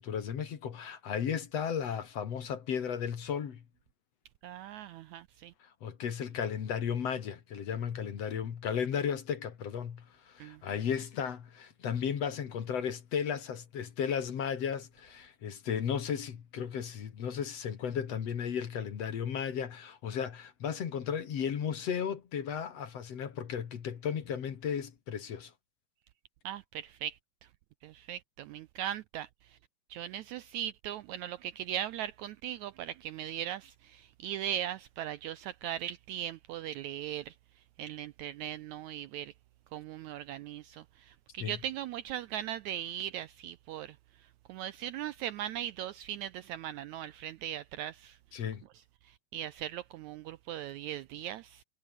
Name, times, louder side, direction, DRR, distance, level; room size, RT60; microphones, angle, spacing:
voice 1, 0.0-3.6 5.6-25.5 41.4-41.6 48.3-48.6, left 7 dB, 50° left, 2.7 m, -35 dB
voice 2, 4.4-5.5 10.4-10.6 26.4-27.2 27.8-29.6 29.9-37.3 37.8-39.3 39.7-44.0 44.5-48.2 49.1-51.6, right 11 dB, 85° right, 1.7 m, -39 dB
omnidirectional pair, 3.9 m